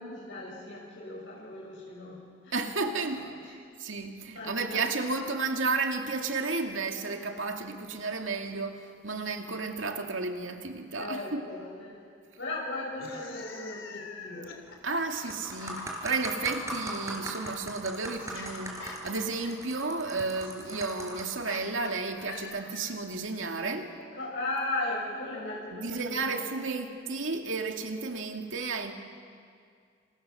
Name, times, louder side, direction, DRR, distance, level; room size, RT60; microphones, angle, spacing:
voice 1, 0.0-2.5 4.3-4.9 10.9-12.0 12.4-14.5 24.2-26.3, left 2 dB, 70° left, -4 dB, 6.3 m, -37 dB
voice 2, 2.5-11.5 14.8-24.0 25.7-28.9, right 3 dB, 90° right, 3 dB, 2.4 m, -32 dB
sound 1, 12.9-16.1 17.2-23.1, left 5 dB, 85° left, 3.3 m, -47 dB
sound 2, 14.5-14.7 15.1-21.5 22.2-22.4, right 1 dB, 15° right, 4.5 m, -39 dB
28.0 x 28.0 x 7.0 m, 2.2 s
head